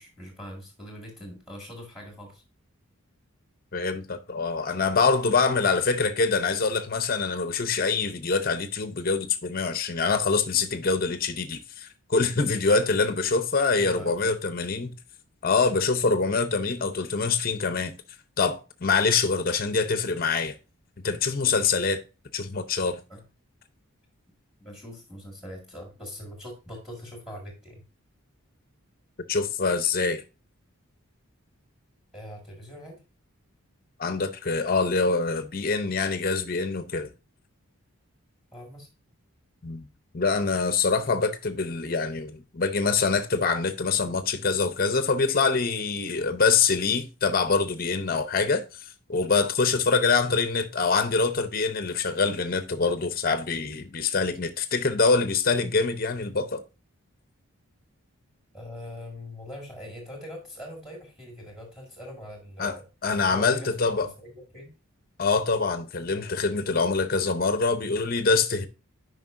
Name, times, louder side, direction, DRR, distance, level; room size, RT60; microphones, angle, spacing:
voice 1, 0.0-2.4 13.8-14.3 23.1-23.2 24.6-27.8 32.1-33.0 38.5-38.9 50.2-50.4 58.5-62.8 63.2-64.7, left 1 dB, ahead, 1.9 m, -42 dB
voice 2, 3.7-14.9 15.4-18.0 18.4-20.5 21.0-22.0 22.3-23.0 29.3-30.2 34.0-37.1 39.6-39.9 40.1-48.8 49.1-56.6 62.6-62.8 63.0-64.1 65.2-68.7, left 4 dB, 40° left, 0.7 m, -25 dB
9.4 x 5.3 x 2.5 m
head